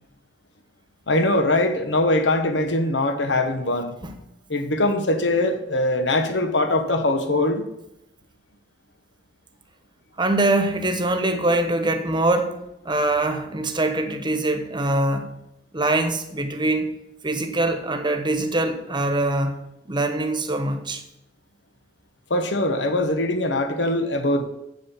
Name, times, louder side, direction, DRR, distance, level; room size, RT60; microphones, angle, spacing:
voice 1, 1.1-4.0 4.5-7.6 22.3-24.5, left 1 dB, 85° left, 1.2 m, -22 dB
voice 2, 10.2-12.6 12.8-15.3 15.7-16.9 17.2-19.6 19.8-21.0, right 2 dB, 25° right, 1.1 m, -23 dB
7.8 x 7.5 x 7.1 m
head